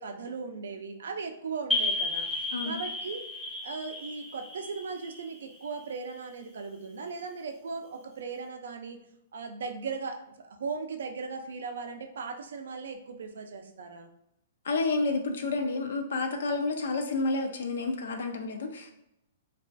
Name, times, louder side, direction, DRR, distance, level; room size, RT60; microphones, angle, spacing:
voice 1, 0.0-2.3 2.6-3.2 3.6-9.0 9.3-14.1, right 4 dB, 85° right, 5 dB, 0.3 m, -38 dB
sound 1, 1.7-6.1, left 2 dB, ahead, 0.5 m, -33 dB
voice 2, 14.6-18.9, left 3 dB, 80° left, 4 dB, 0.4 m, -30 dB
2.3 x 2.2 x 2.4 m, 0.84 s
hypercardioid pair, 155°, 0 cm